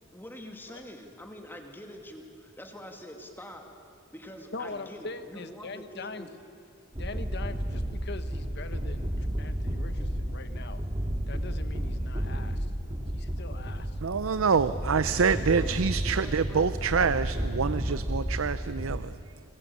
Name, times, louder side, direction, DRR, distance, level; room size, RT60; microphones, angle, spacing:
voice 1, 0.1-3.7 4.1-6.3 14.7-15.7 16.2-16.7 17.8-18.0, equal, 10° left, 3 dB, 2.4 m, -45 dB
voice 2, 4.5-6.3 7.0-10.8 11.3-12.7 13.1-14.0, left 3 dB, 55° left, 10 dB, 1.4 m, -42 dB
sound 1, 6.9-19.0, equal, 25° right, 2.2 m, -32 dB
voice 3, 14.0-19.4, right 5 dB, 80° right, 13 dB, 0.6 m, -26 dB
29.5 x 21.5 x 8.6 m, 2.5 s
head